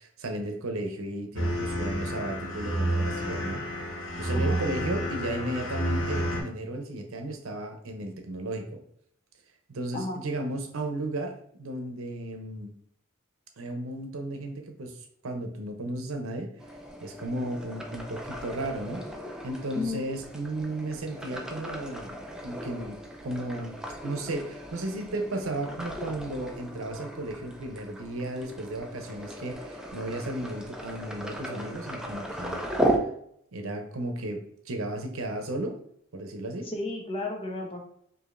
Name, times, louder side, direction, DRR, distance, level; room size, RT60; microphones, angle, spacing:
voice 1, 0.0-3.6 4.2-8.8 9.7-12.7 13.6-15.0 15.2-16.5 17.0-19.0 19.4-23.0 23.2-23.8 24.0-32.6 33.5-35.8 36.1-36.7, right 1 dB, 75° right, 5 dB, 0.7 m, -34 dB
sound 1, 1.3-6.4, equal, 70° left, 1.1 m, -30 dB
sound 2, 16.6-33.0, right 1 dB, 5° right, 0.3 m, -36 dB
voice 2, 36.6-37.8, left 2 dB, 25° left, 1 dB, 0.7 m, -33 dB
4.9 x 2.7 x 2.5 m, 0.68 s
head